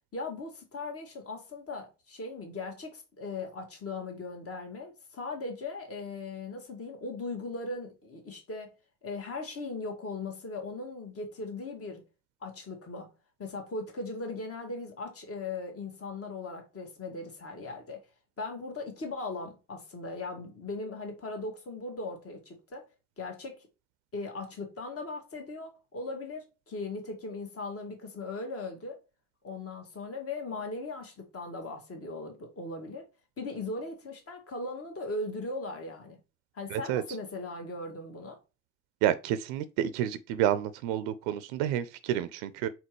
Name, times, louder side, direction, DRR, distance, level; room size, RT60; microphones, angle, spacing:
voice 1, 0.1-8.7 9.0-12.0 12.4-13.1 13.4-18.0 18.4-22.9 23.2-23.6 24.1-29.0 29.4-33.1 33.4-36.2 36.5-38.4, left 3 dB, 40° left, 1.5 m, -38 dB
voice 2, 36.7-37.0 39.0-42.7, right 11 dB, 75° right, 0.5 m, -29 dB
4.3 x 3.8 x 3.0 m
hypercardioid pair, 45°, 37 cm